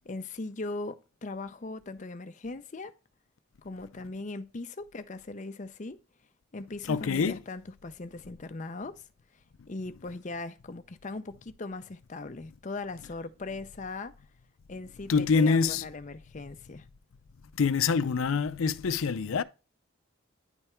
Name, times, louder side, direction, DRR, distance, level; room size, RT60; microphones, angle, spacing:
voice 1, 0.0-2.9 3.6-6.0 6.5-9.0 9.7-14.1 14.7-16.9, left 3 dB, 35° left, 0.5 m, -39 dB
voice 2, 6.8-7.4 15.1-15.9 17.5-19.4, left 5 dB, 80° left, 0.5 m, -25 dB
9.9 x 3.5 x 4.3 m
head